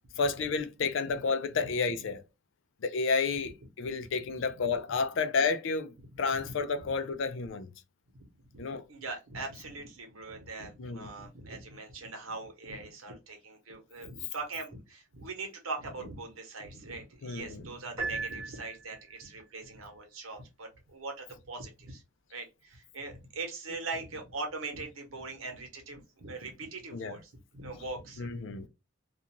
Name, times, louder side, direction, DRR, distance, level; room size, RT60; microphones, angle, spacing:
voice 1, 0.2-2.2 2.8-3.5 3.8-7.7 8.6-8.8 10.8-11.1 17.2-17.6 26.9-27.2 28.2-28.7, left 4 dB, 65° left, 0.4 m, -31 dB
voice 2, 4.2-4.7 6.1-6.5 6.8-6.9 8.5-8.6 8.9-22.0 22.3-28.7, right 3 dB, 90° right, 1.0 m, -41 dB
Piano, 18.0-19.2, right 4 dB, 15° right, 1.0 m, -37 dB
2.5 x 2.3 x 2.8 m
head